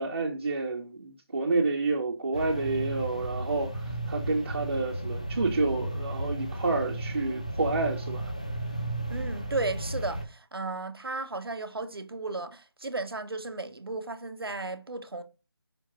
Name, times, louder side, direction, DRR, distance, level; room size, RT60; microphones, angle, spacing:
voice 1, 0.0-8.3, right 3 dB, 30° right, 2.0 m, -29 dB
sound 1, 2.3-10.3, right 1 dB, 15° left, 0.5 m, -34 dB
voice 2, 9.1-15.2, right 3 dB, 65° right, 1.2 m, -34 dB
5.8 x 4.5 x 5.2 m
figure-of-eight pair, 180°, 13 cm